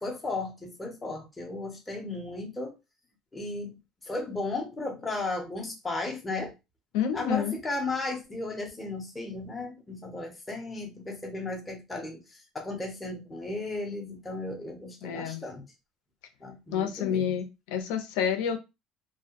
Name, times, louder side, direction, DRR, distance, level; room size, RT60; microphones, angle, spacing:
voice 1, 0.0-2.7 3.3-3.8 4.1-6.5 7.1-12.2 12.5-15.7 16.4-17.4, left 2 dB, 10° left, 0.5 m, -35 dB
voice 2, 6.9-7.6 15.0-15.4 16.7-18.6, left 8 dB, 80° left, 0.6 m, -29 dB
2.6 x 2.0 x 2.8 m
cardioid pair, 175°, 0 cm